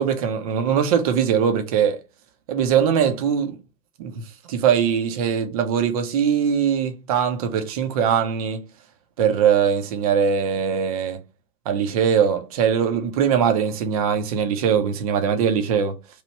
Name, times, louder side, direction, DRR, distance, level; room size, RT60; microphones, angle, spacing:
voice 1, 0.0-2.0 2.5-3.6 4.0-4.2 4.5-8.6 9.2-11.2 11.7-15.9, right 7 dB, 25° right, 0.4 m, -21 dB
3.0 x 2.4 x 4.1 m
figure-of-eight pair, 110°, 50 cm